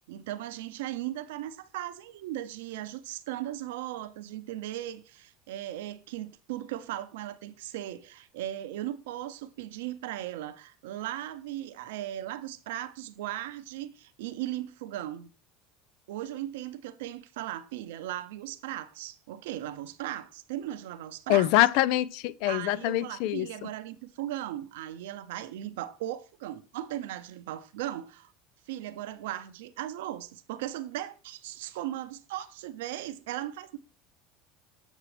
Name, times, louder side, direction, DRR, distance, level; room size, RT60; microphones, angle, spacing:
voice 1, 0.1-15.3 16.1-21.5 22.5-28.3 28.7-33.8, right 13 dB, 85° right, 0.6 m, -37 dB
voice 2, 21.3-23.5, left 15 dB, 70° left, 0.3 m, -24 dB
7.2 x 6.7 x 3.3 m
supercardioid pair, 105°, 0 cm